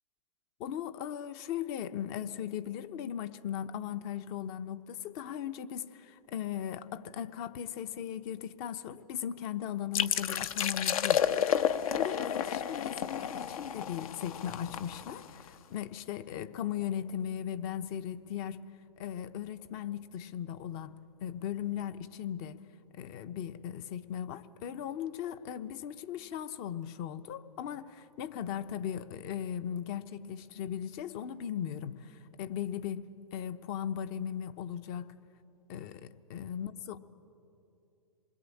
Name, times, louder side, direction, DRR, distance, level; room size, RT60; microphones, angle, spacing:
voice 1, 0.6-11.5 11.9-18.6 19.0-20.9 21.2-22.6 22.9-35.1 35.7-37.0, left 9 dB, 35° left, 1.0 m, -38 dB
sound 1, 9.9-15.5, left 9 dB, 60° left, 1.1 m, -31 dB
27.0 x 21.0 x 8.6 m
hypercardioid pair, 125°, 21 cm